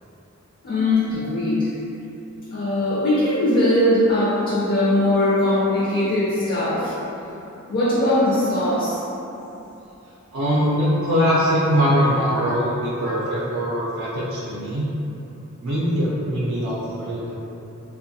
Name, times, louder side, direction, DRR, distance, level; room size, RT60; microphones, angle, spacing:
voice 1, 0.6-1.7 2.5-6.9 7.7-9.0, left 1 dB, 45° left, -9 dB, 0.4 m, -20 dB
voice 2, 10.3-14.9 15.6-17.3, equal, 65° right, -8 dB, 0.4 m, -22 dB
2.9 x 2.2 x 2.6 m, 3.0 s
head